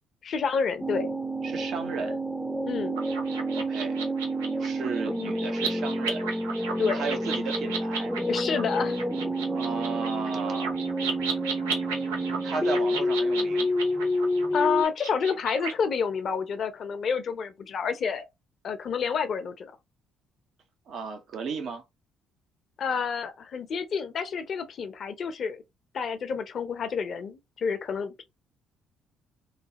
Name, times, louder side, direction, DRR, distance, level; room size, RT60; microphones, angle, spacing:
voice 1, 0.2-1.1 2.6-3.0 6.8-7.1 8.2-9.0 14.5-18.3 18.6-19.7 22.8-25.6 25.9-28.2, left 6 dB, 55° left, 0.7 m, -29 dB
sound 1, 0.8-14.8, equal, ahead, 0.6 m, -29 dB
voice 2, 1.4-2.2 3.6-4.0 4.6-6.3 6.9-8.1 9.5-10.8 12.4-13.7 20.9-21.8, right 5 dB, 65° right, 0.9 m, -34 dB
sound 2, 3.0-15.7, right 5 dB, 90° right, 0.6 m, -35 dB
3.2 x 2.3 x 2.9 m
hypercardioid pair, 55°, 0 cm